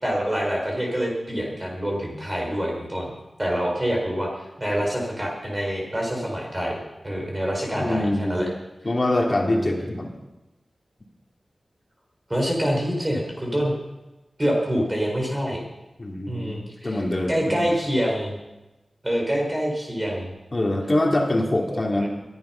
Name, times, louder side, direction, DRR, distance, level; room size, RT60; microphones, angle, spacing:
voice 1, 0.0-3.1 3.4-8.5 9.5-10.0 12.3-13.7 14.4-15.6 16.3-17.0 17.3-18.3 19.0-20.3 21.7-22.1, equal, 20° right, -1 dB, 4.4 m, -26 dB
voice 2, 7.7-8.4 8.8-10.1 16.0-17.7 20.5-22.1, left 1 dB, 35° left, 1 dB, 2.6 m, -24 dB
22.0 x 11.0 x 5.7 m, 1.0 s
wide cardioid pair, 100°, 0 cm